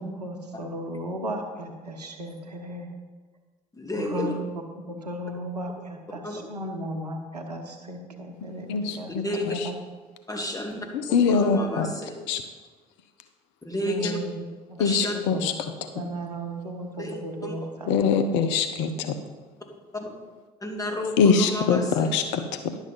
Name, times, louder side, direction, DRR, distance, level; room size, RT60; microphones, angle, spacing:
voice 1, 0.0-2.9 3.9-9.7 13.9-14.8 15.1-15.5 15.9-18.1, right 1 dB, 90° right, 4 dB, 0.9 m, -35 dB
voice 2, 3.8-4.3 6.2-6.4 9.2-9.6 10.3-10.8 11.3-12.2 13.6-14.2 14.8-15.1 17.0-17.5 19.9-20.1 20.6-22.2, left 1 dB, 15° left, 0 dB, 2.5 m, -31 dB
voice 3, 8.7-9.7 10.9-11.9 12.3-12.4 14.0-14.1 14.8-16.0 17.9-19.2 21.2-22.7, left 5 dB, 65° left, 8 dB, 0.8 m, -24 dB
10.5 x 6.3 x 5.4 m, 1.4 s
figure-of-eight pair, 50°, 20 cm